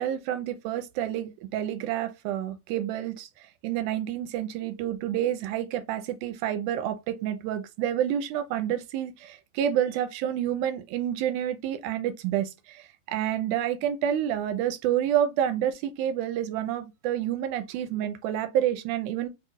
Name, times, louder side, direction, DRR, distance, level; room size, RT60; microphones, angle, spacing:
voice 1, 0.0-19.3, right 10 dB, 80° right, 1.8 m, -29 dB
7.3 x 2.7 x 2.4 m
omnidirectional pair, 4.1 m